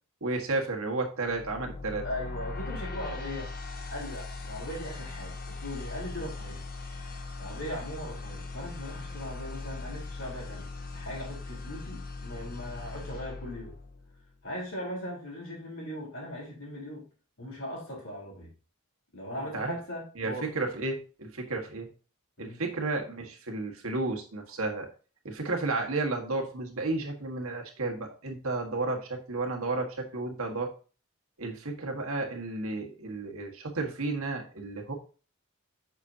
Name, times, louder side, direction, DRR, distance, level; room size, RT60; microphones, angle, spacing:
voice 1, 0.2-2.0 19.5-19.8 20.2-21.9 22.4-24.9 25.2-30.7 31.4-34.9, right 3 dB, 70° right, 2 dB, 1.6 m, -32 dB
sound 1, 1.2-14.3, left 3 dB, 40° left, 0.9 m, -40 dB
voice 2, 2.0-3.5 3.9-6.6 7.4-13.7 14.4-17.0 17.4-18.5 19.1-20.5 22.4-22.6, equal, 60° left, -3 dB, 3.8 m, -39 dB
8.2 x 6.2 x 2.8 m, 0.36 s
head